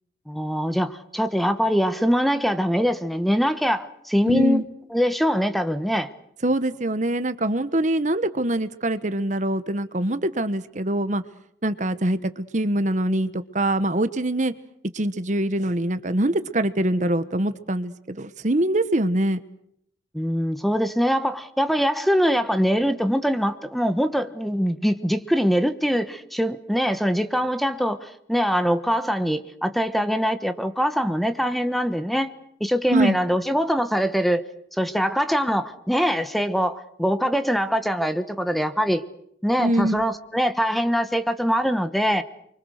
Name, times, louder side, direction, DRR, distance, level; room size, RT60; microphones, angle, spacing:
voice 1, 0.3-4.7 4.9-6.1 20.1-32.3 32.6-34.4 34.8-39.0 39.4-42.2, equal, ahead, 10 dB, 1.2 m, -23 dB
voice 2, 4.3-4.6 6.4-11.2 11.6-14.5 14.9-19.4 32.9-33.2 39.6-40.0, right 1 dB, 45° right, 12 dB, 1.2 m, -24 dB
30.0 x 24.0 x 6.5 m, 0.72 s
head